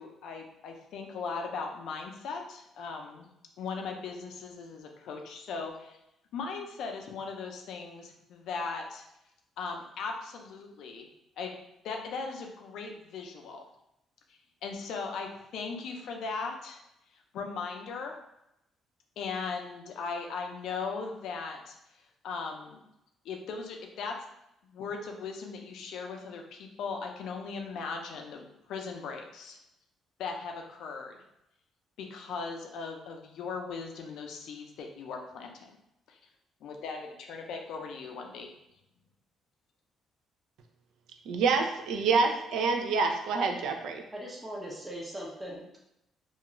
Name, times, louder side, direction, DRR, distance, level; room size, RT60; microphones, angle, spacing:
voice 1, 0.0-3.3 3.6-6.0 6.3-9.1 9.6-11.1 11.4-11.6 11.8-13.6 14.6-16.8 17.3-18.2 19.2-21.7 22.2-22.8 23.2-24.1 24.7-29.6 30.2-31.2 32.0-35.7 36.1-36.2 36.6-38.5, left 4 dB, 70° left, 2 dB, 0.4 m, -38 dB
voice 2, 41.3-44.0, right 4 dB, 75° right, 4 dB, 0.4 m, -27 dB
voice 3, 44.1-45.8, equal, 15° right, -2 dB, 0.5 m, -40 dB
2.4 x 2.3 x 2.9 m, 0.85 s
cardioid pair, 160°, 0 cm